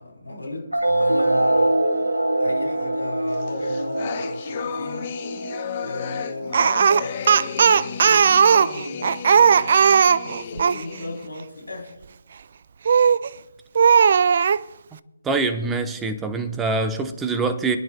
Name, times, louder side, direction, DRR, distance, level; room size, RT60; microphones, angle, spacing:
voice 1, 0.0-1.8 2.4-5.1 5.8-12.0, left 2 dB, 80° left, 3.8 m, -36 dB
sound 1, 0.7-7.7, right 1 dB, 90° right, 1.8 m, -24 dB
sound 2, 3.4-11.3, left 8 dB, 35° left, 0.7 m, -34 dB
Speech, 6.5-10.8 12.9-13.3 13.7-14.6, right 6 dB, 45° right, 0.3 m, -16 dB
voice 2, 15.2-17.8, right 3 dB, 10° right, 0.9 m, -24 dB
26.5 x 10.5 x 2.3 m
figure-of-eight pair, 145°, 0 cm